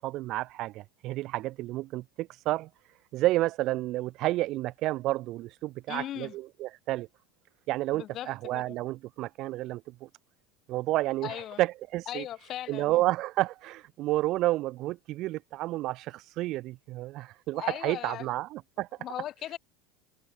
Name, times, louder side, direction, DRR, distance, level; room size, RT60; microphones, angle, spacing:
voice 1, 0.0-2.7 3.1-7.1 7.7-10.1 10.7-12.2 12.7-18.9, right 17 dB, 50° right, 1.1 m, -30 dB
voice 2, 5.9-6.3 7.9-8.8 11.2-11.6 12.1-13.0 17.5-18.3 19.0-19.6, left 12 dB, 40° left, 5.0 m, -38 dB
supercardioid pair, 140°, 0 cm